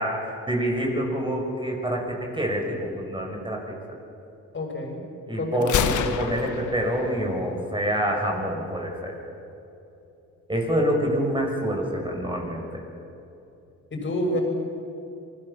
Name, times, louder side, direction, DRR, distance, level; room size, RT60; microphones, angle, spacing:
voice 1, 0.0-3.6 5.3-9.1 10.5-12.8, equal, 15° right, 1 dB, 6.2 m, -26 dB
voice 2, 4.5-5.0 5.3-5.8 13.9-14.4, left 1 dB, 40° left, 2 dB, 6.6 m, -28 dB
Gunshot gunfire, 5.6-7.6, left 8 dB, 75° left, 1.5 m, -28 dB
27.5 x 20.5 x 7.3 m, 2.9 s
cardioid pair, 90°, 30 cm